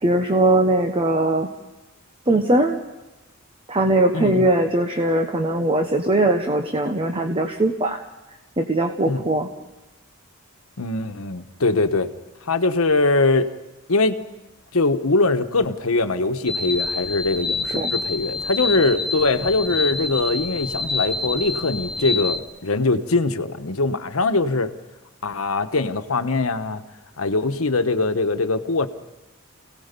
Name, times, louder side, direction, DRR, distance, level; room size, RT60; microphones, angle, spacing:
voice 1, 0.0-1.5 2.3-2.8 3.7-8.0 8.6-9.5 17.7-17.9, right 1 dB, 25° right, 5 dB, 1.1 m, -20 dB
voice 2, 4.1-4.5 9.1-9.2 10.8-12.1 12.5-13.5 13.9-14.2 14.7-24.7 25.2-26.8 27.2-28.9, left 3 dB, 90° left, 8 dB, 1.2 m, -22 dB
sound 1, 16.5-22.4, left 3 dB, ahead, 1.3 m, -27 dB
29.0 x 18.0 x 5.3 m, 1.0 s
head